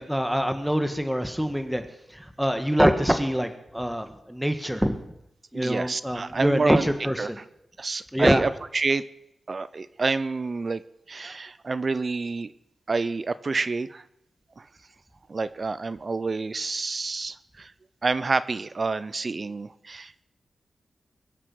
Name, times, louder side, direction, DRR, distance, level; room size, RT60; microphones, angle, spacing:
voice 1, 0.0-1.8 2.1-5.0 5.5-7.4 8.1-8.4, equal, 5° right, 8 dB, 1.8 m, -24 dB
voice 2, 5.5-6.8 7.2-7.4 7.8-9.0 9.5-10.8 11.1-12.5 12.9-14.0 14.6-14.7 15.3-17.7 18.0-20.2, right 3 dB, 50° right, 16 dB, 0.7 m, -28 dB
22.5 x 7.6 x 6.4 m, 0.82 s
cardioid pair, 50°, 0 cm